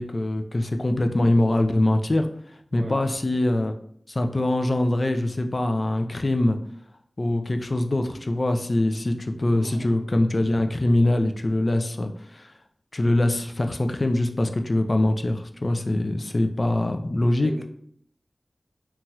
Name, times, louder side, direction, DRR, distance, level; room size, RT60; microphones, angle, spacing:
voice 1, 0.0-2.3 2.7-3.7 4.1-6.6 7.2-12.5 12.9-17.5, left 1 dB, 50° left, 6 dB, 0.3 m, -23 dB
voice 2, 2.7-3.0 9.5-9.9 17.4-17.6, right 1 dB, 60° right, 3 dB, 0.4 m, -38 dB
2.9 x 2.3 x 2.8 m, 0.65 s
wide cardioid pair, 55°, 0 cm